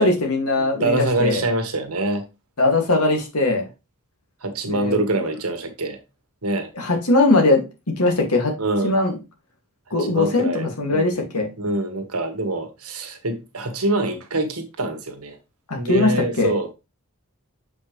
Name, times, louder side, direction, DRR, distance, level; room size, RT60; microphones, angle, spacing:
voice 1, 0.0-1.4 2.6-3.6 4.7-5.0 6.8-7.6 8.0-8.5 8.8-9.2 9.9-11.5 15.7-16.1 16.4-16.5, left 2 dB, 75° left, 2.4 m, -20 dB
voice 2, 0.7-2.2 4.4-6.0 6.4-6.7 8.6-8.9 10.0-11.3 11.6-15.4 15.7-16.7, right 2 dB, 75° right, 1.5 m, -25 dB
7.2 x 5.4 x 3.3 m
head